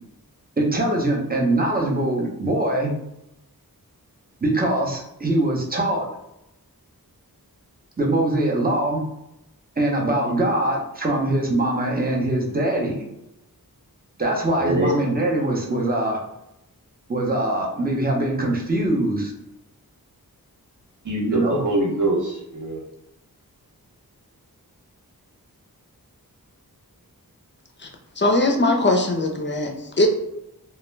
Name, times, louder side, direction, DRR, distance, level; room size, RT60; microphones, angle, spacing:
voice 1, 0.6-2.9 4.4-6.1 8.0-9.0 9.8-13.0 14.2-16.2 17.1-19.3 21.3-21.6, right 1 dB, 25° right, -1 dB, 0.6 m, -22 dB
voice 2, 14.6-14.9 21.0-22.8, right 1 dB, 55° right, -2 dB, 0.8 m, -23 dB
voice 3, 28.2-29.7 30.0-30.1, left 2 dB, 30° left, 2 dB, 0.4 m, -20 dB
2.2 x 2.1 x 3.1 m, 0.84 s
wide cardioid pair, 55°, 37 cm